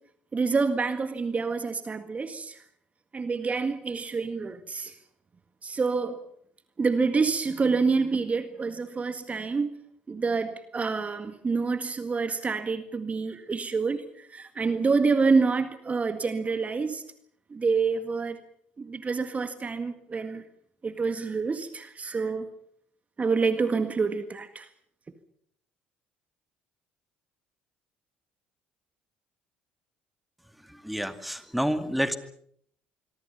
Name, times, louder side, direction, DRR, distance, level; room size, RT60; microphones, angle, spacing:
voice 1, 0.3-2.6 3.1-4.9 5.6-6.2 6.8-9.7 10.1-17.0 17.5-18.4 18.8-20.4 20.8-22.5 23.2-24.7, right 4 dB, 30° right, 1.8 m, -27 dB
voice 2, 30.8-32.2, equal, ahead, 2.3 m, -28 dB
25.5 x 24.0 x 5.7 m
figure-of-eight pair, 55°, 5 cm